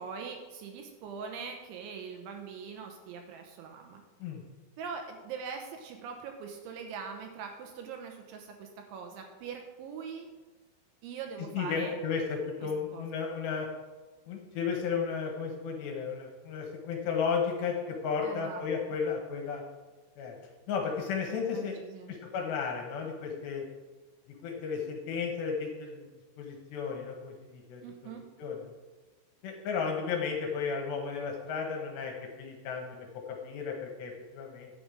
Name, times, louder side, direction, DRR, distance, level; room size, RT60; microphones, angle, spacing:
voice 1, 0.0-4.0 4.8-10.3 11.0-12.0 12.6-13.1 18.2-18.9 21.5-22.2 27.8-28.2, right 6 dB, 80° right, 4 dB, 3.2 m, -42 dB
voice 2, 11.5-13.7 14.3-19.6 20.2-20.3 20.7-21.7 22.1-23.6 24.4-26.1 26.4-27.8 28.4-28.6 29.4-34.7, left 5 dB, 70° left, 1 dB, 3.0 m, -34 dB
10.0 x 8.7 x 5.0 m, 1.3 s
omnidirectional pair, 5.7 m